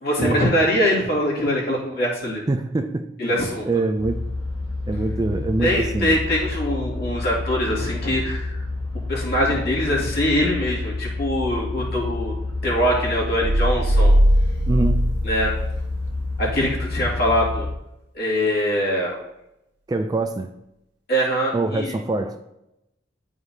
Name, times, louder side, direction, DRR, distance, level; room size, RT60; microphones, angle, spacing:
voice 1, 0.0-2.4 3.2-3.7 5.3-8.6 9.1-12.3 12.6-14.1 15.2-15.5 16.4-17.7 18.1-19.2 21.1-22.0, equal, 55° left, -4 dB, 2.4 m, -23 dB
voice 2, 2.5-3.1 3.7-4.3 4.9-6.2 14.7-15.2 19.9-20.5 21.5-22.4, right 2 dB, 20° right, 7 dB, 0.3 m, -24 dB
sound 1, 4.0-17.7, left 2 dB, 15° left, 1.3 m, -29 dB
sound 2, 13.4-16.4, equal, 70° right, 1.1 m, -19 dB
11.0 x 4.8 x 2.8 m, 0.87 s
head